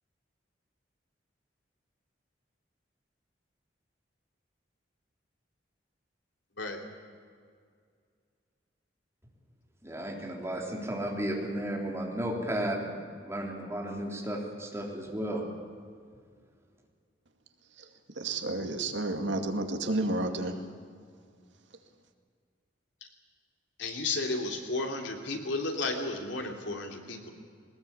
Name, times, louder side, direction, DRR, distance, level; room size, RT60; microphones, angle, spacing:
voice 1, 9.8-15.4, right 1 dB, 15° right, -1 dB, 3.6 m, -34 dB
voice 2, 18.1-20.6, right 2 dB, 80° right, 5 dB, 2.2 m, -31 dB
voice 3, 23.8-27.3, left 2 dB, 80° left, 3 dB, 3.1 m, -33 dB
21.0 x 19.5 x 8.6 m, 2.1 s
head